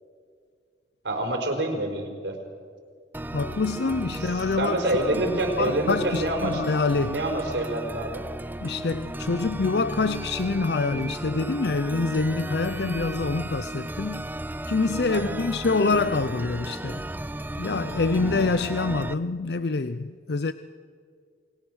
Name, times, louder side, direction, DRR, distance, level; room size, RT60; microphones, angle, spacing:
voice 1, 1.0-2.4 4.2-6.6 7.0-8.2 15.1-15.4, right 1 dB, 75° right, 4.6 m, -27 dB
sound 1, 3.1-19.1, right 1 dB, 10° right, 0.6 m, -34 dB
voice 2, 3.3-5.3 5.6-7.2 8.6-14.3 14.7-17.0 17.6-20.5, left 3 dB, 65° left, 0.6 m, -26 dB
29.0 x 20.5 x 6.3 m
head